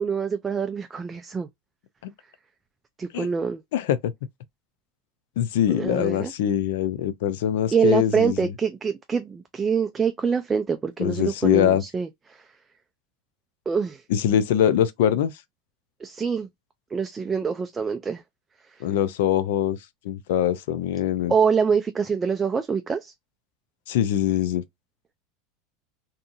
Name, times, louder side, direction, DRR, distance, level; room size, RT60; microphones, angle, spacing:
voice 1, 0.0-1.5 3.0-3.6 5.7-6.3 7.7-12.4 13.7-14.0 16.0-16.5 16.9-18.2 21.3-23.1, right 6 dB, 20° right, 0.3 m, -25 dB
voice 2, 3.7-4.1 5.4-8.5 11.0-11.8 14.1-15.3 18.8-19.8 20.0-21.3 23.9-24.6, left 10 dB, 80° left, 0.4 m, -23 dB
2.7 x 2.5 x 2.3 m
supercardioid pair, 110°, 0 cm